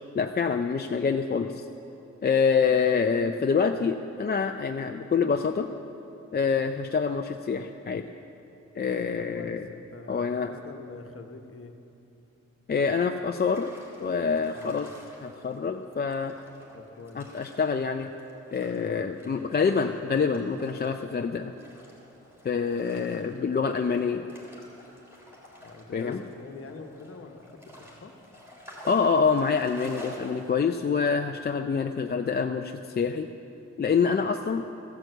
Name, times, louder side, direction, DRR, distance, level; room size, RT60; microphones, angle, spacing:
voice 1, 0.1-1.7 2.2-5.7 6.3-8.0 8.7-9.7 10.1-10.5 12.7-13.7 14.0-14.9 15.2-16.3 17.1-18.1 18.5-21.5 22.4-24.2 25.9-26.2 28.9-33.3 33.8-34.7, left 5 dB, 35° left, 5 dB, 0.4 m, -26 dB
voice 2, 9.1-11.7 14.5-14.9 16.7-17.2 25.6-28.1, left 4 dB, 50° left, 5 dB, 1.1 m, -45 dB
sound 1, 13.0-30.5, equal, 10° right, 3.0 m, -50 dB
14.5 x 9.2 x 7.8 m, 2.8 s
wide cardioid pair, 135°, 29 cm